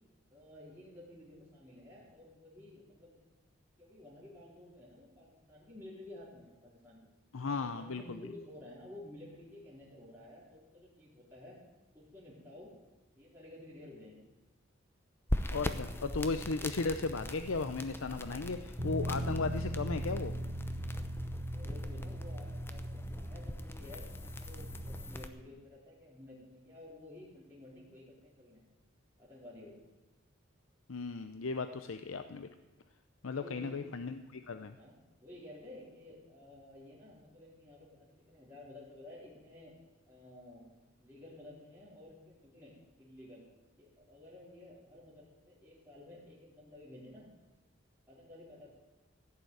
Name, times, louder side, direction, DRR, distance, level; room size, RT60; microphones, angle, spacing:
voice 1, 0.3-3.2 3.8-7.0 7.5-11.6 11.9-12.7 13.1-14.2 21.4-22.9 23.1-28.6 29.2-29.8 33.3-34.0 34.8-39.7 40.1-40.7 41.0-43.4 43.8-47.3 48.1-48.7, left 1 dB, 10° right, -8 dB, 4.1 m, -53 dB
voice 2, 7.3-8.2 15.5-20.3 30.9-32.5 33.2-34.8, left 3 dB, 75° left, 8 dB, 0.7 m, -36 dB
sound 1, 15.3-25.3, left 1 dB, 10° left, 0.8 m, -41 dB
Bass guitar, 18.8-25.0, right 1 dB, 45° right, 2.7 m, -40 dB
16.0 x 6.9 x 9.3 m, 1.1 s
head